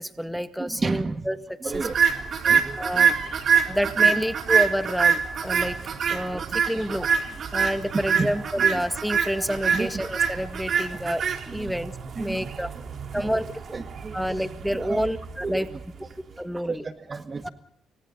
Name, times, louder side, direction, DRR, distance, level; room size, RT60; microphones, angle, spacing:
voice 1, 0.0-1.4 1.6-1.8 2.7-3.2 3.7-5.8 6.1-7.1 7.5-11.9 12.2-12.7 13.1-13.5 14.1-15.7 16.4-16.8 17.4-17.5, equal, ahead, 8 dB, 2.0 m, -28 dB
voice 2, 0.6-1.3 1.6-1.9 2.4-3.0 3.7-3.8 6.1-6.4 6.9-7.1 8.2-8.3 8.7-8.8 9.7-9.9 10.8-10.9 11.5-11.8 12.2-12.5 13.1-13.4 13.7-14.3 14.7-15.0 15.4-15.8 16.6-17.5, right 4 dB, 30° right, 8 dB, 1.7 m, -32 dB
sound 1, 1.7-16.1, right 6 dB, 55° right, 3.8 m, -25 dB
30.0 x 25.0 x 4.0 m, 0.67 s
cardioid pair, 90°, 0 cm